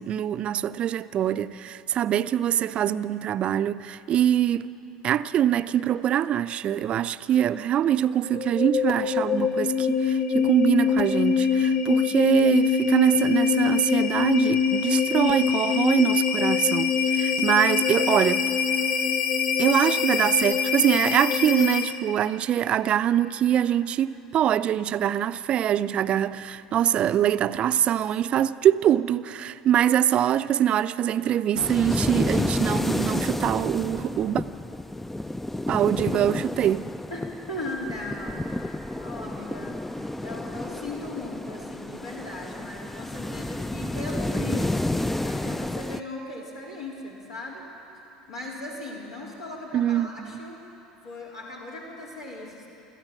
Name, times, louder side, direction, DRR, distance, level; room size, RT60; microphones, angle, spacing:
voice 1, 0.0-4.7 5.0-18.4 19.6-34.4 35.7-36.8 49.7-50.4, right 10 dB, 40° right, 0.5 m, -23 dB
sound 1, 8.2-22.1, left 7 dB, 60° left, 1.2 m, -24 dB
voice 2, 11.9-12.3 37.1-39.8 40.2-47.6 48.3-50.6 51.0-52.7, left 2 dB, 80° left, 3.8 m, -38 dB
sound 2, 31.5-46.0, left 1 dB, 5° left, 0.4 m, -30 dB
25.0 x 14.0 x 7.5 m
figure-of-eight pair, 70°, 3 cm